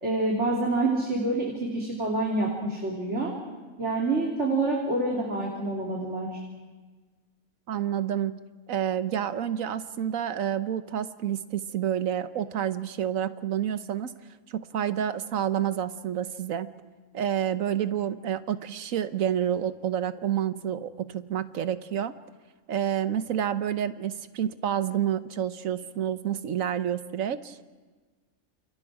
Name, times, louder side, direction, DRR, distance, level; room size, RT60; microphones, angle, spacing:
voice 1, 0.0-3.3 3.8-6.4, right 2 dB, 50° right, -2 dB, 3.3 m, -27 dB
voice 2, 7.7-8.3 8.7-14.1 14.5-16.7 17.1-22.1 22.7-27.6, right 10 dB, 70° right, 12 dB, 1.3 m, -29 dB
28.5 x 28.5 x 4.9 m, 1.4 s
omnidirectional pair, 1.5 m